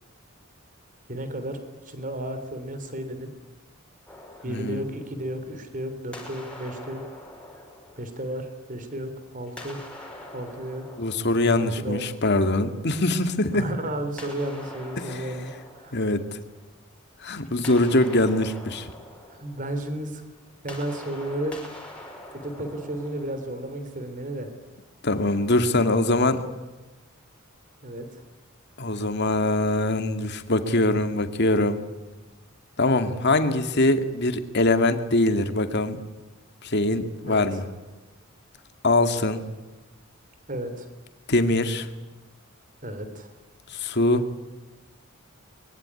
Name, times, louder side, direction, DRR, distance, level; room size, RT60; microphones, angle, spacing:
voice 1, 1.1-3.3 4.4-7.0 8.0-9.8 10.3-10.8 11.6-12.1 13.5-16.1 19.2-20.2 20.6-21.5 22.3-24.5 27.8-28.2 37.3-37.6 40.5-40.9 42.8-43.3, right 1 dB, 40° right, 9 dB, 3.5 m, -33 dB
sound 1, 4.1-5.7 6.1-8.9 9.5-12.4 14.2-16.9 17.3-24.0, left 1 dB, 5° left, 5.8 m, -45 dB
voice 2, 4.5-4.8 11.0-13.7 15.0-15.2 15.9-16.2 17.2-18.9 25.0-26.4 28.8-31.8 32.8-36.0 36.6-37.6 38.8-39.4 41.3-41.9 43.7-44.3, left 2 dB, 55° left, 8 dB, 2.2 m, -23 dB
24.0 x 22.0 x 9.9 m, 1.2 s
head